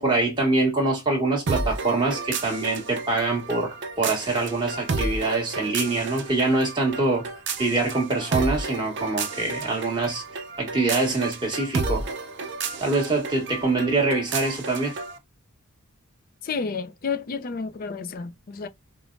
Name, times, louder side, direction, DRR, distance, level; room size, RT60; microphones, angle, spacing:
voice 1, 0.0-7.3 7.6-12.1 12.8-15.0, right 2 dB, 20° right, 1.5 m, -24 dB
sound 1, 1.5-15.2, right 3 dB, 55° right, 0.6 m, -32 dB
voice 2, 16.4-18.7, left 5 dB, 40° left, 0.4 m, -31 dB
4.9 x 2.1 x 2.5 m
head